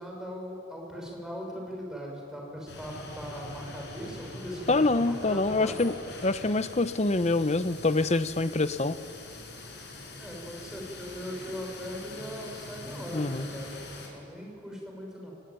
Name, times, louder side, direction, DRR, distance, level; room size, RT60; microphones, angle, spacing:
voice 1, 0.0-5.8 10.2-15.3, equal, 5° right, -1 dB, 5.7 m, -39 dB
sound 1, 2.7-14.1, left 2 dB, 60° left, 5.9 m, -44 dB
voice 2, 4.7-5.9 6.2-9.0 13.1-13.5, left 2 dB, 35° left, 12 dB, 0.8 m, -25 dB
25.0 x 20.0 x 9.1 m, 2.7 s
head